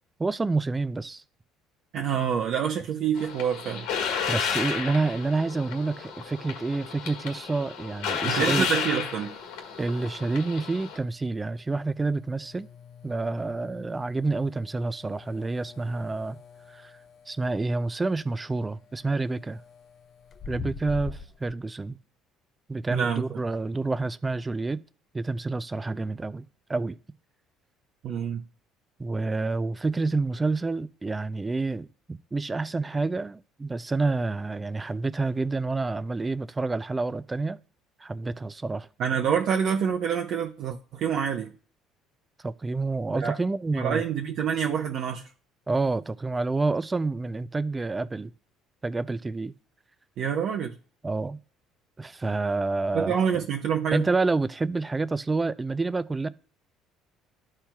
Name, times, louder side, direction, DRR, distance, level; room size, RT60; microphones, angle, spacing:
voice 1, 0.2-1.2 4.3-8.7 9.8-12.7 13.0-16.4 16.7-17.0 17.3-19.6 20.5-22.0 22.7-24.8 25.1-27.0 29.0-37.6 38.0-38.9 42.4-44.0 45.7-48.3 48.8-49.5 51.0-51.4 52.0-53.1 53.9-56.3, right 3 dB, 15° right, 0.4 m, -28 dB
voice 2, 1.9-3.9 8.2-9.3 22.9-23.2 28.0-28.4 39.0-41.5 43.1-43.3 43.7-45.3 50.2-50.8 52.9-54.1, right 7 dB, 55° right, 0.7 m, -27 dB
sound 1, 3.1-11.0, left 6 dB, 90° left, 1.5 m, -32 dB
sound 2, 8.3-21.5, left 5 dB, 40° left, 0.6 m, -46 dB
13.0 x 4.4 x 2.3 m
cardioid pair, 125°, 0 cm